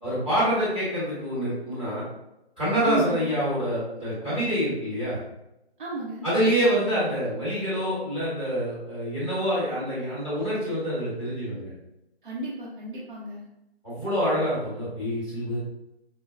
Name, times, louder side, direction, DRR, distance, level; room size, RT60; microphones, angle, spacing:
voice 1, 0.0-2.0 2.6-5.2 6.2-11.7 13.8-15.6, equal, 10° right, -11 dB, 1.0 m, -26 dB
voice 2, 2.8-3.4 5.8-6.3 12.2-13.4, right 2 dB, 50° right, -5 dB, 0.8 m, -32 dB
4.3 x 2.2 x 2.5 m, 0.88 s
figure-of-eight pair, 160°, 32 cm